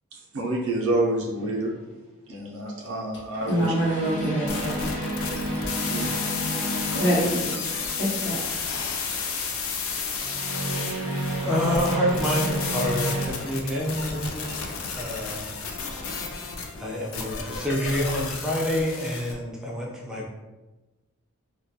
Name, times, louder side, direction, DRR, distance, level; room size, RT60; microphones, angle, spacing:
voice 1, 0.3-1.7 2.3-3.7 5.8-6.5, right 2 dB, 80° right, -2 dB, 0.4 m, -28 dB
sound 1, 1.4-1.7 3.4-8.4 10.2-13.3, right 1 dB, 35° left, 1.1 m, -31 dB
voice 2, 3.5-4.8 6.9-7.5 8.0-8.4, right 1 dB, 55° left, -5 dB, 0.8 m, -25 dB
sound 2, 4.5-19.3, left 5 dB, 75° left, 0.4 m, -32 dB
voice 3, 10.5-11.1 11.4-15.6 16.0-16.4 16.7-20.3, equal, 5° right, -4 dB, 0.3 m, -28 dB
2.2 x 2.2 x 2.6 m, 1.1 s
head